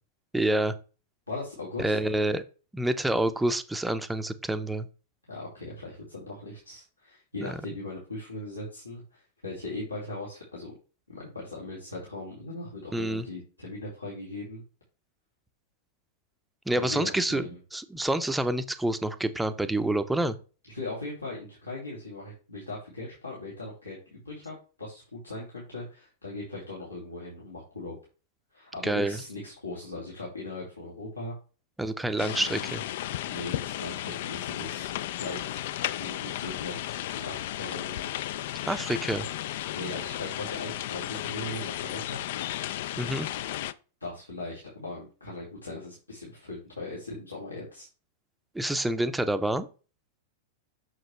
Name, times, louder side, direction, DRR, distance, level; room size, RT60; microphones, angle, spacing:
voice 1, 0.3-0.7 1.8-2.4 2.7-4.9 7.4-7.6 12.9-13.3 16.7-17.4 17.7-20.3 28.8-29.2 31.8-32.8 38.7-39.2 43.0-43.3 48.5-49.7, right 1 dB, 5° right, 11 dB, 0.6 m, -27 dB
voice 2, 1.3-2.0 5.3-10.7 11.1-14.6 16.7-17.6 20.7-27.9 28.5-31.3 33.2-35.6 36.0-38.0 39.7-42.2 44.0-47.9, left 2 dB, 85° left, -6 dB, 2.5 m, -39 dB
sound 1, 32.2-43.7, left 13 dB, 55° left, 0.4 m, -34 dB
6.5 x 6.3 x 3.3 m, 0.36 s
figure-of-eight pair, 95°, 0 cm